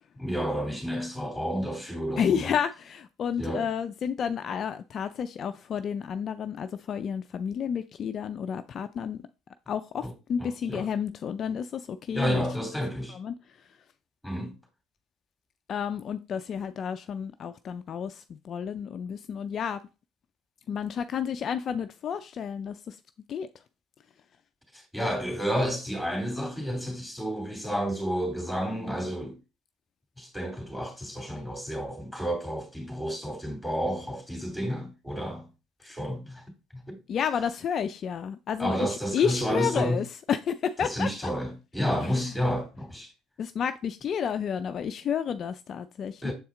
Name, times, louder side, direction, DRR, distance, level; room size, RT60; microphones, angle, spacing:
voice 1, 0.2-2.5 3.4-3.6 10.0-10.1 10.4-10.9 12.1-13.2 14.2-14.6 24.7-29.4 30.2-35.5 35.8-36.4 36.7-37.0 38.6-40.0 40.8-43.1 46.2-46.3, equal, ahead, 2.6 m, -31 dB
voice 2, 2.2-9.2 9.7-12.5 13.1-13.3 15.7-19.8 20.7-23.0 23.3-23.5 37.1-41.3 42.2-42.3 43.4-46.3, left 7 dB, 45° left, 0.4 m, -31 dB
7.2 x 4.2 x 3.7 m
hypercardioid pair, 65°, 0 cm